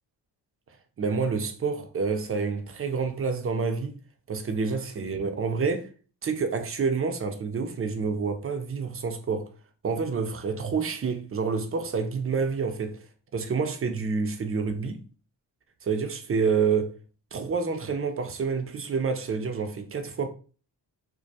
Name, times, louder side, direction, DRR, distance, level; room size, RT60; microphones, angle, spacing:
voice 1, 1.0-4.0 4.3-5.9 6.2-9.5 9.8-13.0 13.3-15.0 15.8-17.0 17.3-20.3, right 5 dB, 30° right, 0.5 m, -28 dB
2.2 x 2.2 x 2.6 m
supercardioid pair, 50°, 46 cm